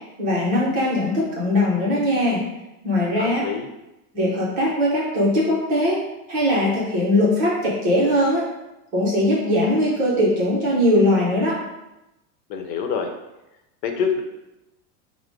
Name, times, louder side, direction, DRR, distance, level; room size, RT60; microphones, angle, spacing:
voice 1, 0.2-2.4 2.8-3.4 4.1-6.0 6.3-8.5 8.9-11.6, left 1 dB, 20° right, -5 dB, 0.5 m, -20 dB
voice 2, 3.2-3.7 12.5-13.1 13.8-14.2, left 6 dB, 80° left, 4 dB, 0.9 m, -25 dB
4.8 x 2.1 x 3.7 m, 0.95 s
supercardioid pair, 175°, 49 cm